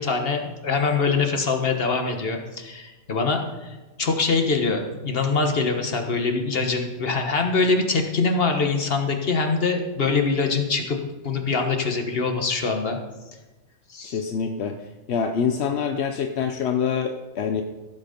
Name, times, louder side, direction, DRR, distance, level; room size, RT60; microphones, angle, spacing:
voice 1, 0.0-11.0 11.2-13.0 13.9-14.2, left 4 dB, 65° left, 4 dB, 1.6 m, -24 dB
voice 2, 14.0-14.8 15.1-17.6, left 6 dB, 85° left, 6 dB, 1.0 m, -25 dB
16.0 x 8.0 x 5.2 m, 1.1 s
omnidirectional pair, 1.1 m